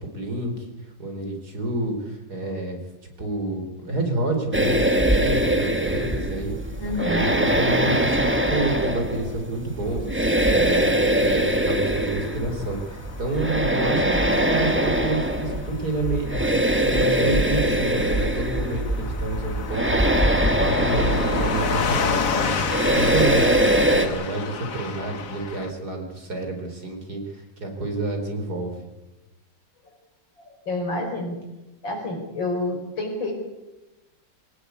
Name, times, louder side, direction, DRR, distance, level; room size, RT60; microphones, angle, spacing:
voice 1, 0.0-2.8 3.2-20.3 20.6-28.8, right 2 dB, 55° right, 3 dB, 4.9 m, -29 dB
sound 1, 4.5-24.1, right 1 dB, 5° right, 1.7 m, -22 dB
voice 2, 6.8-7.3 30.5-31.4 31.8-33.3, left 2 dB, 90° left, 2 dB, 6.1 m, -28 dB
Car passing by / Truck, 11.4-25.7, left 5 dB, 50° left, 1.6 m, -31 dB
23.5 x 18.5 x 8.4 m, 1.0 s
omnidirectional pair, 2.0 m